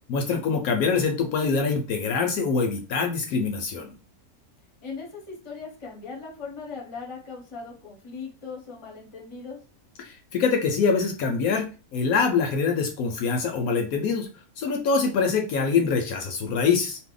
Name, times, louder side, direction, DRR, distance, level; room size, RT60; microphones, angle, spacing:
voice 1, 0.1-3.9 10.0-14.3 14.6-17.0, left 5 dB, 70° left, 3 dB, 0.9 m, -24 dB
voice 2, 4.8-9.6, left 4 dB, 30° left, -1 dB, 0.6 m, -39 dB
2.7 x 2.1 x 3.7 m, 0.34 s
omnidirectional pair, 1.7 m